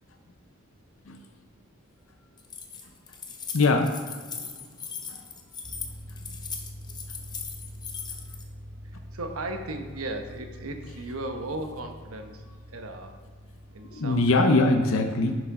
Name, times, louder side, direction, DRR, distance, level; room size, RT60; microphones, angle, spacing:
Keys jangling, 2.4-8.4, left 6 dB, 20° left, 0.7 m, -39 dB
voice 1, 3.5-3.9 5.1-5.2 13.9-15.4, left 2 dB, 70° left, 5 dB, 0.7 m, -22 dB
sound 1, 5.6-14.3, equal, 40° right, 1.0 m, -44 dB
voice 2, 8.9-13.2 13.7-14.6, right 2 dB, 80° right, 5 dB, 1.0 m, -36 dB
10.0 x 6.3 x 3.7 m, 1.5 s
head